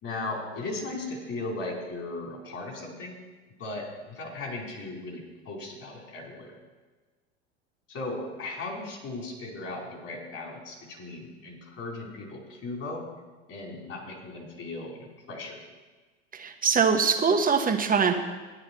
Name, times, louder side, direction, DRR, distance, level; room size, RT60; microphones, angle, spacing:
voice 1, 0.0-3.2 3.6-6.5 7.9-13.0 13.5-15.6, left 2 dB, 40° left, -1 dB, 4.5 m, -37 dB
voice 2, 16.3-18.1, right 6 dB, 25° right, 4 dB, 1.3 m, -23 dB
12.5 x 10.5 x 4.6 m, 1.3 s
hypercardioid pair, 85°, 34 cm